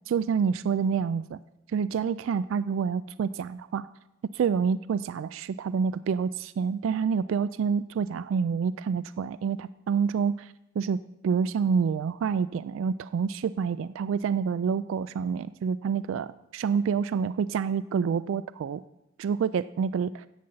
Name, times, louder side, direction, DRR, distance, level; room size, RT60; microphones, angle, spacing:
voice 1, 0.1-1.4 1.7-3.9 4.3-18.8 19.2-20.3, right 6 dB, 75° right, 16 dB, 0.3 m, -28 dB
10.5 x 5.5 x 7.7 m, 0.89 s
head